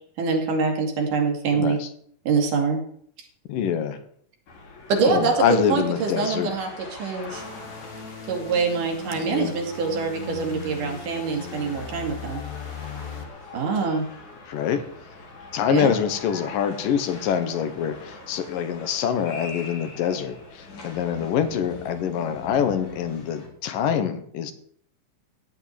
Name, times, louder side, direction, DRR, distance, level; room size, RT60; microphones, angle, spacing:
voice 1, 0.2-1.8 2.3-2.8 3.2-3.3 4.9-7.4 8.3-12.4 13.5-14.1 15.7-15.9, right 5 dB, 75° right, 2 dB, 3.9 m, -25 dB
voice 2, 1.5-1.9 3.5-4.0 5.0-6.5 9.1-9.5 14.5-14.9 15.5-24.5, left 8 dB, 85° left, 10 dB, 3.0 m, -25 dB
sound 1, 4.5-23.5, left 3 dB, 65° left, 5.0 m, -43 dB
sound 2, 7.3-13.2, left 5 dB, 30° left, 1.8 m, -38 dB
15.5 x 6.4 x 9.6 m, 0.64 s
omnidirectional pair, 3.8 m